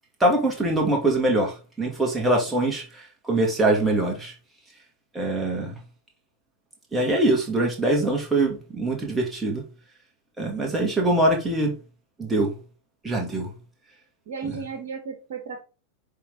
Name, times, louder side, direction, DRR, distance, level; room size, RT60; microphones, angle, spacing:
voice 1, 0.2-2.8 3.2-4.3 5.1-5.7 6.9-9.6 10.4-11.7 12.2-12.5 13.0-13.5, right 2 dB, 10° right, 2.3 m, -23 dB
voice 2, 10.4-10.7 14.3-15.6, right 5 dB, 55° right, 1.6 m, -35 dB
10.0 x 3.8 x 4.0 m
figure-of-eight pair, 90°, 0 cm